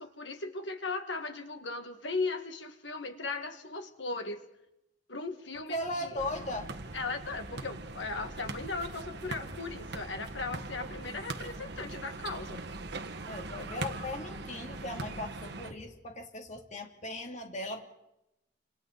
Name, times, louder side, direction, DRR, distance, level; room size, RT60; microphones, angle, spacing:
voice 1, 0.0-4.4 5.1-6.2 6.9-12.6, left 3 dB, 75° left, 7 dB, 2.0 m, -37 dB
voice 2, 5.5-6.7 13.3-17.9, left 1 dB, 40° left, 3 dB, 3.0 m, -38 dB
sound 1, 6.2-15.7, right 2 dB, 60° right, 1.6 m, -41 dB
28.5 x 27.0 x 4.2 m, 0.87 s
head